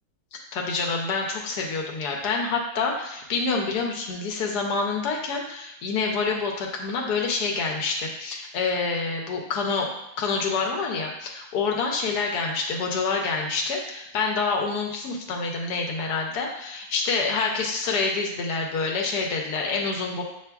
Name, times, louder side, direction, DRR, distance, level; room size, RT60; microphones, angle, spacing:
voice 1, 0.5-20.2, left 4 dB, 90° left, 1 dB, 1.2 m, -27 dB
6.7 x 3.0 x 2.3 m, 0.80 s
omnidirectional pair, 1.7 m